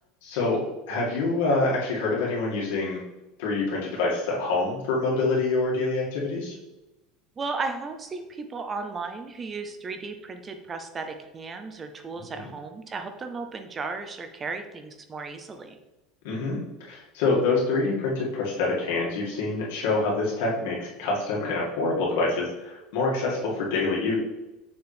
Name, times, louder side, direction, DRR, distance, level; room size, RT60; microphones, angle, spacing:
voice 1, 0.2-0.6 0.9-3.0 3.4-6.6 12.1-12.4 16.2-24.2, left 3 dB, 80° left, -4 dB, 2.1 m, -26 dB
voice 2, 7.4-15.8, right 4 dB, 20° right, 7 dB, 0.5 m, -35 dB
6.7 x 4.4 x 3.4 m, 1.0 s
cardioid pair, 160°, 0 cm